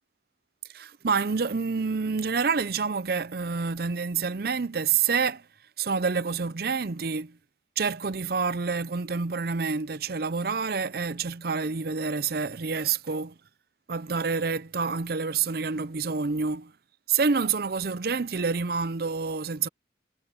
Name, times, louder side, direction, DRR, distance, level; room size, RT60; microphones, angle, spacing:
voice 1, 0.7-5.4 5.8-7.4 7.8-13.3 13.9-16.7 17.1-19.7, right 5 dB, 55° right, 0.6 m, -28 dB
head